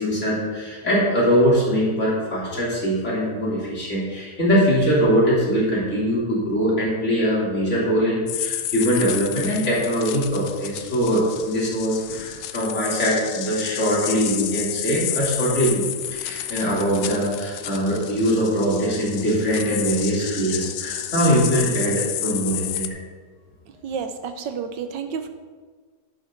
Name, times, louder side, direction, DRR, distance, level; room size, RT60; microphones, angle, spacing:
voice 1, 0.0-15.8 16.1-22.9, equal, 40° left, -6 dB, 3.8 m, -22 dB
sound 1, 8.3-22.9, left 11 dB, 80° left, 1.3 m, -31 dB
voice 2, 23.8-25.3, right 6 dB, 90° right, 8 dB, 1.6 m, -30 dB
11.5 x 9.3 x 3.9 m, 1.5 s
omnidirectional pair, 1.9 m